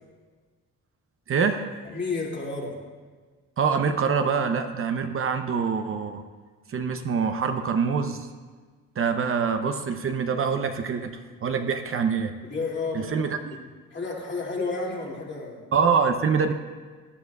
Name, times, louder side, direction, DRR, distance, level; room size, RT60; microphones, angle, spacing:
voice 1, 1.3-1.7 3.6-6.2 6.7-8.3 9.0-12.3 12.9-13.5 15.7-16.5, right 6 dB, 45° right, 7 dB, 0.8 m, -25 dB
voice 2, 1.8-2.8 12.4-13.7 13.9-15.7, left 3 dB, 35° left, -2 dB, 2.6 m, -31 dB
17.0 x 10.5 x 2.4 m, 1.5 s
cardioid pair, 90°, 30 cm